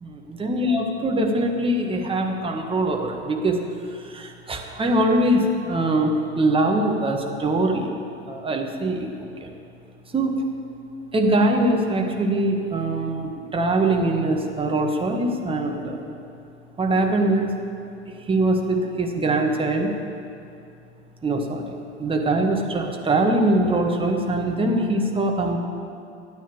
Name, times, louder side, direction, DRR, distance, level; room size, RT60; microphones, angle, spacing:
voice 1, 0.1-3.6 4.0-7.9 8.3-9.1 9.4-9.5 10.1-10.4 11.1-16.1 16.8-17.5 18.3-19.9 21.2-21.7 22.0-25.6, right 1 dB, 15° right, 2 dB, 1.6 m, -22 dB
13.5 x 9.3 x 7.1 m, 2.6 s
figure-of-eight pair, 80°, 35 cm